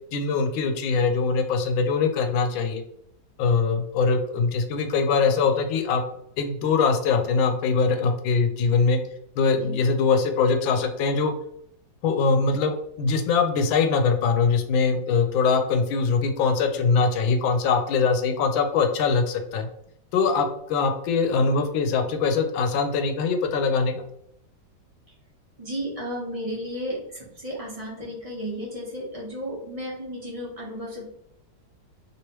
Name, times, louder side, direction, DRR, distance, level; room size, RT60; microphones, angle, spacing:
voice 1, 0.1-2.8 3.4-6.0 6.4-9.0 9.4-11.3 12.0-19.7 20.1-24.0, left 4 dB, 85° left, 6 dB, 1.3 m, -22 dB
voice 2, 25.6-31.0, equal, 30° right, -5 dB, 0.7 m, -33 dB
3.2 x 3.0 x 2.9 m, 0.74 s
omnidirectional pair, 2.1 m